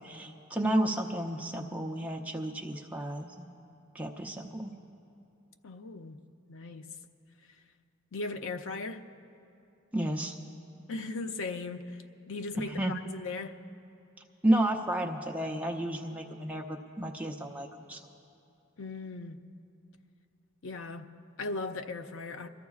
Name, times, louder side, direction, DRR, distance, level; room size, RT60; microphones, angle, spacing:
voice 1, 0.0-3.5 3.9-4.7 9.9-10.4 12.7-13.0 14.4-18.0, right 1 dB, 5° right, 0.6 m, -31 dB
voice 2, 5.6-6.9 8.1-9.1 10.9-13.6 18.8-19.5 20.6-22.5, left 3 dB, 70° left, 0.5 m, -38 dB
25.0 x 14.0 x 2.4 m
head